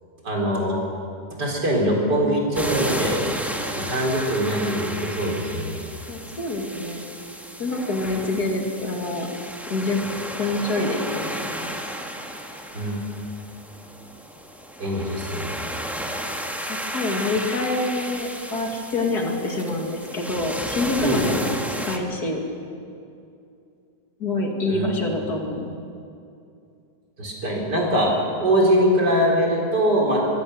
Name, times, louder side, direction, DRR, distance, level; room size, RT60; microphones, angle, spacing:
voice 1, 0.2-0.8 1.4-3.2 3.8-5.8 12.7-13.0 14.8-15.6 21.0-21.3 24.7-24.9 27.2-30.3, equal, 80° right, -1 dB, 4.6 m, -22 dB
sound 1, 2.5-22.0, equal, ahead, 1.4 m, -33 dB
voice 2, 6.1-7.0 7.6-9.3 9.7-10.0 10.4-11.7 16.7-21.5 21.9-22.4 24.2-25.7, left 2 dB, 70° left, 2 dB, 2.8 m, -26 dB
24.5 x 16.5 x 6.6 m, 2.5 s
omnidirectional pair, 1.8 m